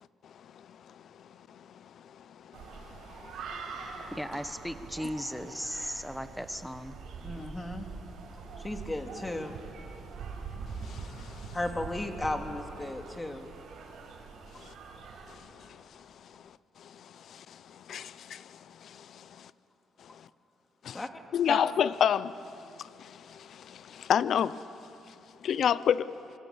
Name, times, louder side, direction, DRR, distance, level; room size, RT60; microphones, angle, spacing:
voice 1, 0.0-4.1 10.8-11.6 14.5-14.7 15.3-19.5 20.0-20.3 20.8-21.0 21.3-24.6 25.1-25.2 25.4-26.1, left 9 dB, 65° left, 0.7 m, -33 dB
sound 1, 2.5-15.3, right 4 dB, 80° right, 5.1 m, -44 dB
voice 2, 4.1-7.0, equal, ahead, 1.3 m, -36 dB
voice 3, 7.2-7.9 8.6-9.6 11.5-13.5 20.9-21.2 21.5-21.6, left 1 dB, 15° left, 2.4 m, -35 dB
28.0 x 24.5 x 7.2 m
cardioid pair, 90°, 0 cm